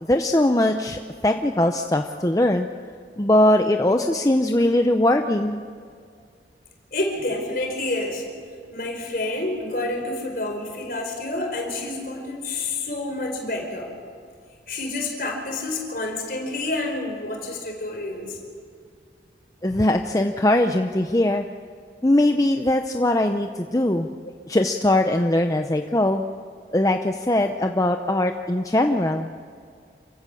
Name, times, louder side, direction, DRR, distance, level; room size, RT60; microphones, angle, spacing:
voice 1, 0.0-2.7 3.2-5.6 19.6-21.4 22.0-24.1 24.5-26.2 26.7-29.3, left 1 dB, 20° left, 5 dB, 0.7 m, -21 dB
voice 2, 6.9-8.2 8.7-13.9 14.7-18.4, left 2 dB, 55° left, 2 dB, 4.7 m, -28 dB
28.0 x 16.0 x 7.1 m, 2.2 s
head